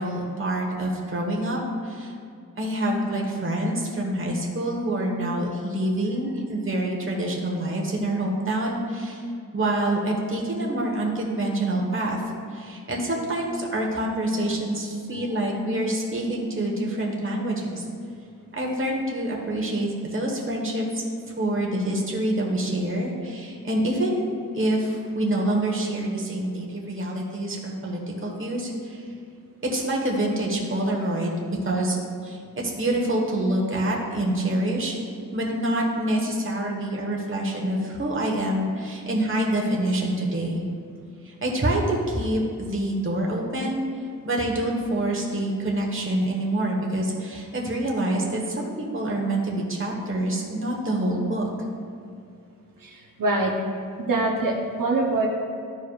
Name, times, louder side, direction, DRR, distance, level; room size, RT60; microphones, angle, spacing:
voice 1, 0.0-1.6 1.8-2.1 2.6-9.2 9.5-12.2 12.5-17.8 18.5-21.0 21.4-24.2 24.5-29.0 29.6-31.4 31.6-32.0 32.2-35.0 35.3-40.6 41.2-43.8 44.2-51.5, right 1 dB, 40° right, -2 dB, 1.3 m, -26 dB
voice 2, 52.8-53.5 54.0-55.3, right 2 dB, 75° right, -1 dB, 0.9 m, -24 dB
13.0 x 4.9 x 2.4 m, 2.4 s
wide cardioid pair, 125°, 33 cm